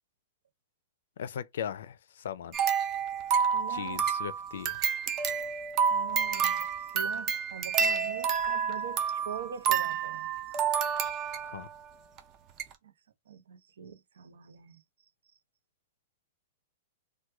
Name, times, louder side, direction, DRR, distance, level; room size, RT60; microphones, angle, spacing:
voice 1, 1.2-2.6 3.7-4.8 11.4-11.7, left 9 dB, 70° left, 0.4 m, -38 dB
sound 1, 2.5-11.7 12.2-12.3 12.6-12.7, right 7 dB, 25° right, 0.4 m, -29 dB
voice 2, 3.5-4.1 5.9-6.7 6.9-10.3 12.8-12.9 13.3-15.1, right 8 dB, 90° right, 0.6 m, -43 dB
3.0 x 2.2 x 3.3 m
supercardioid pair, 165°, 0 cm